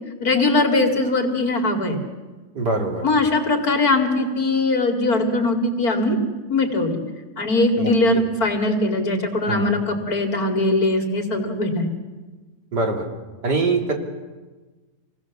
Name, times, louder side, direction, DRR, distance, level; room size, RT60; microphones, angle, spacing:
voice 1, 0.2-2.0 3.0-6.2 6.5-7.0 7.4-11.9, left 2 dB, 60° left, 3 dB, 3.1 m, -21 dB
voice 2, 2.6-3.1 7.8-8.2 9.5-9.8 12.7-13.1 13.4-13.9, right 3 dB, 75° right, 0 dB, 3.5 m, -23 dB
26.0 x 19.0 x 7.3 m, 1.3 s
omnidirectional pair, 1.8 m